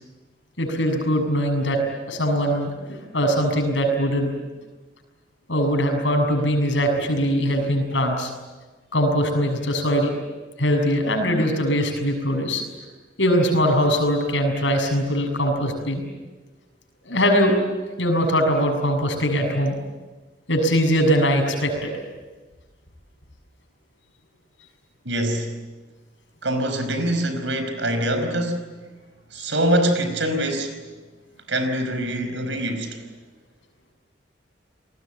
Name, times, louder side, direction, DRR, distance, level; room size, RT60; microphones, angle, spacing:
voice 1, 0.6-1.8 2.1-4.3 5.5-8.3 8.9-10.1 10.6-12.6 13.2-16.0 17.0-17.5 18.0-19.8 20.5-21.9 29.4-29.5, equal, 80° left, 3 dB, 6.7 m, -21 dB
voice 2, 25.0-25.6 26.4-28.7 29.3-30.8 31.5-33.1, right 1 dB, 85° right, 8 dB, 4.8 m, -24 dB
29.0 x 20.0 x 9.0 m, 1.2 s
head